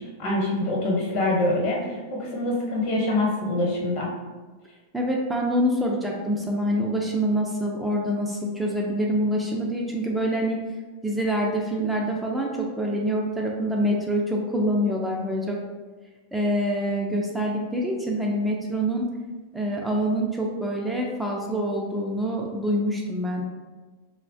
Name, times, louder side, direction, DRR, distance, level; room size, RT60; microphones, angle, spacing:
voice 1, 0.0-4.1, left 1 dB, 55° left, -2 dB, 0.9 m, -25 dB
voice 2, 4.9-10.6 11.0-15.6 16.3-19.0 19.5-23.4, equal, 5° right, -2 dB, 0.3 m, -26 dB
3.1 x 2.1 x 2.6 m, 1.3 s
hypercardioid pair, 115°, 0 cm